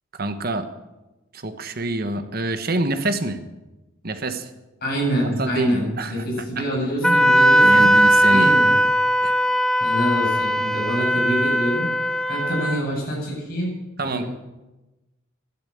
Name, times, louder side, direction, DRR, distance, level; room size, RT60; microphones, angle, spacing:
voice 1, 0.1-0.7 1.3-3.4 4.0-4.5 5.4-6.7 7.0-7.2 7.6-8.6 9.2-9.3 14.0-14.3, right 2 dB, 45° right, 9 dB, 1.3 m, -26 dB
voice 2, 4.8-7.9 8.3-8.7 9.8-11.9 12.3-13.7 14.0-14.3, equal, 45° left, -2 dB, 7.7 m, -26 dB
Wind instrument woodwind instrument, 7.0-12.8, equal, 5° left, 0.7 m, -18 dB
13.0 x 12.0 x 8.7 m, 1.1 s
head